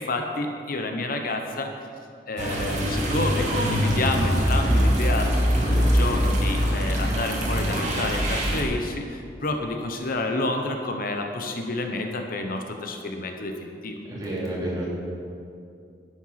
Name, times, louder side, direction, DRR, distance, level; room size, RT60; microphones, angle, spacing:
voice 1, 0.0-1.7 2.3-5.3 5.6-14.0, left 2 dB, 55° left, 4 dB, 0.9 m, -29 dB
sound 1, 2.4-8.6, equal, 45° right, 2.3 m, -23 dB
voice 2, 14.1-14.9, right 1 dB, 20° right, -6 dB, 3.3 m, -30 dB
11.5 x 9.2 x 5.8 m, 2.4 s
head